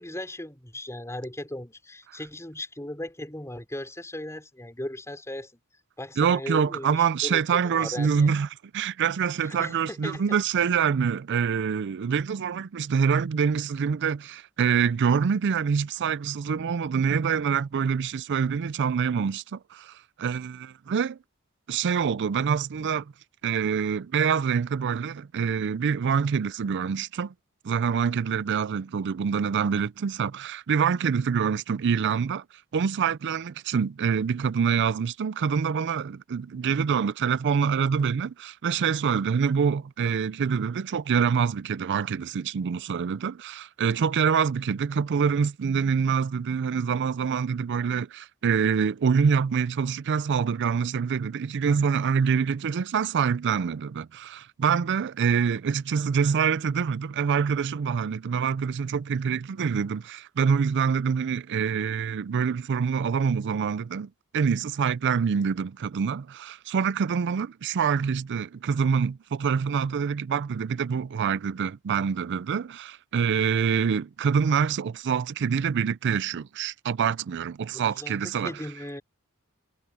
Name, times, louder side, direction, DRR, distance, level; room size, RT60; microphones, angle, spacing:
voice 1, 0.0-5.5 6.0-8.3 9.4-10.4 77.7-79.0, left 1 dB, 15° left, 5.1 m, -37 dB
voice 2, 6.2-8.5 8.7-21.2 21.7-23.1 23.4-27.3 27.6-32.4 32.7-78.5, right 6 dB, 55° right, 0.4 m, -26 dB
head